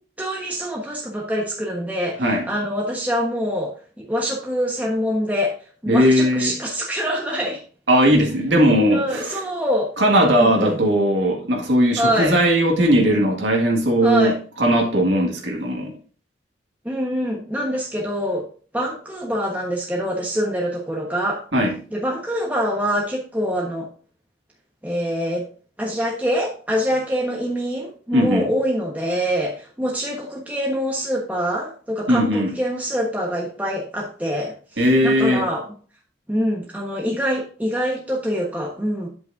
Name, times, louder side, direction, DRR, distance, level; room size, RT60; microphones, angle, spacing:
voice 1, 0.2-3.7 4.1-5.5 5.8-7.6 8.9-9.9 10.3-10.8 12.0-12.4 14.0-14.4 16.8-18.5 18.7-21.4 21.9-23.9 24.8-25.4 25.8-35.7 36.3-39.1, equal, 10° right, -2 dB, 1.3 m, -25 dB
voice 2, 5.9-6.5 7.9-9.4 10.0-15.9 21.5-21.8 28.1-28.4 32.1-32.6 34.8-35.5, equal, 85° right, 0 dB, 2.0 m, -18 dB
8.9 x 7.8 x 2.7 m, 0.41 s
head